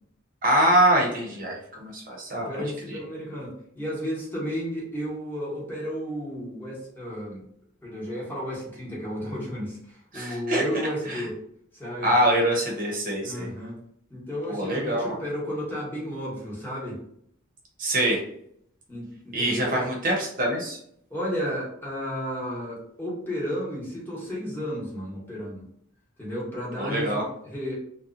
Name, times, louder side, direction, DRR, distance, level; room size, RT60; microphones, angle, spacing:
voice 1, 0.4-3.0 10.1-10.6 11.1-11.2 12.0-13.5 14.5-15.2 17.8-18.2 19.3-20.8 26.8-27.2, right 1 dB, 45° right, -2 dB, 0.7 m, -24 dB
voice 2, 2.3-7.4 7.8-11.4 11.7-12.1 13.2-13.8 14.1-17.0 18.9-19.8 21.1-25.6 26.2-27.7, equal, 10° left, -6 dB, 0.9 m, -33 dB
2.7 x 2.1 x 2.4 m, 0.69 s
head